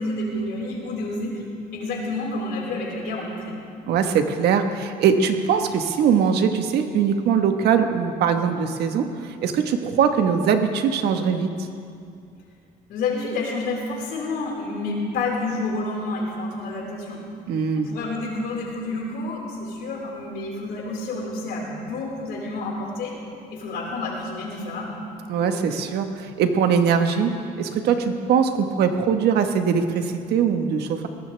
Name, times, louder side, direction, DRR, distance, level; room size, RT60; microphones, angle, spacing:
voice 1, 0.0-3.6 12.9-17.2 17.7-23.1 23.5-24.9, left 2 dB, 75° left, -2 dB, 4.7 m, -29 dB
voice 2, 3.9-11.7 17.5-17.9 25.3-27.3 27.6-31.1, right 7 dB, 75° right, 6 dB, 1.3 m, -21 dB
22.0 x 19.0 x 3.4 m, 2.4 s
cardioid pair, 110°, 17 cm